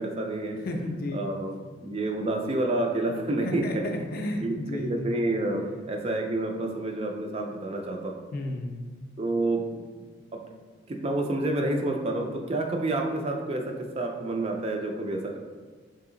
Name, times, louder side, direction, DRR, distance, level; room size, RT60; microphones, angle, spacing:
voice 1, 0.0-0.6 1.1-3.9 4.4-8.1 9.2-10.4 10.9-15.4, right 2 dB, 30° right, 2 dB, 0.3 m, -29 dB
voice 2, 0.6-1.3 3.4-5.1 8.3-8.9, left 1 dB, 45° left, 3 dB, 0.4 m, -32 dB
3.4 x 2.8 x 3.7 m, 1.4 s
head